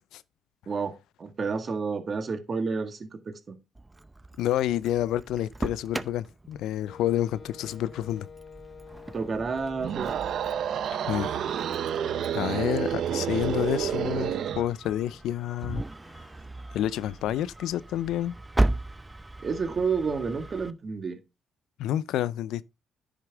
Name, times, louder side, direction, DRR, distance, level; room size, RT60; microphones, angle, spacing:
voice 1, 1.2-3.6 9.1-10.2 19.4-21.2, right 5 dB, 40° right, 1.8 m, -30 dB
Engine starting, 3.8-20.7, right 2 dB, 15° right, 0.6 m, -37 dB
voice 2, 4.4-8.3 11.1-11.3 12.3-15.8 16.7-18.4 21.8-22.6, left 12 dB, 85° left, 0.4 m, -29 dB
Wind instrument woodwind instrument, 6.9-12.5, left 6 dB, 50° left, 1.6 m, -48 dB
sound 1, 9.8-14.7, right 9 dB, 70° right, 0.8 m, -29 dB
9.9 x 6.5 x 3.5 m
cardioid pair, 90°, 0 cm